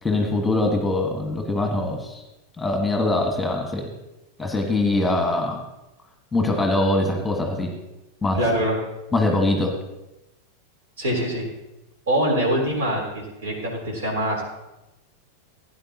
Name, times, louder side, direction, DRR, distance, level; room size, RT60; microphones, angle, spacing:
voice 1, 0.0-2.2 2.6-3.9 4.4-5.6 6.3-7.7 8.2-8.4 9.1-9.8, left 2 dB, 10° left, 2 dB, 1.5 m, -23 dB
voice 2, 8.3-8.8 11.0-11.5 12.1-14.4, equal, 60° right, 0 dB, 3.6 m, -24 dB
16.5 x 9.9 x 2.9 m, 0.96 s
figure-of-eight pair, 90°, 0 cm